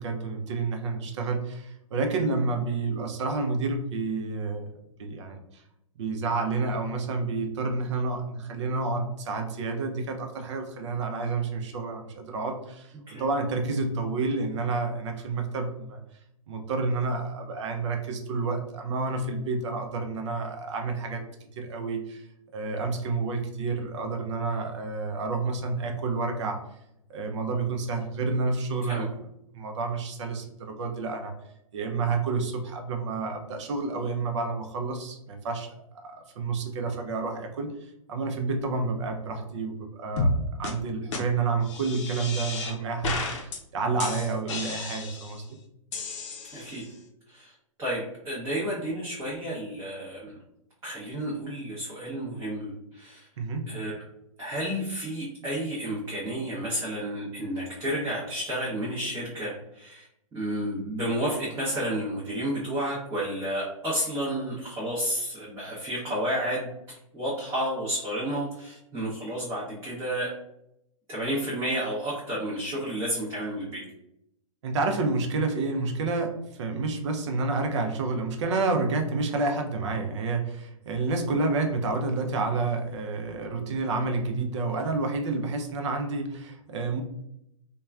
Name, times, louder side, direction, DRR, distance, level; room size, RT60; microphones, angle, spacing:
voice 1, 0.0-4.7 5.0-5.6 6.0-12.9 13.2-16.0 16.5-21.2 21.6-22.2 22.5-26.6 27.1-29.1 29.5-31.3 31.7-40.3 40.6-45.6 53.4-53.7 74.6-87.0, right 3 dB, 55° right, 4 dB, 0.6 m, -29 dB
sound 1, 40.2-40.4 40.6-40.7 41.1-41.2 41.7-42.7 43.0-43.6 44.0-45.4 45.9-46.9, left 2 dB, 55° left, 0.6 m, -31 dB
voice 2, 46.5-46.9 47.3-50.4 50.8-53.3 53.7-54.0 54.4-60.1 60.3-66.7 67.1-70.3 71.1-73.8, right 1 dB, 15° right, -7 dB, 0.7 m, -31 dB
3.0 x 2.2 x 2.3 m, 0.81 s
hypercardioid pair, 125°, 18 cm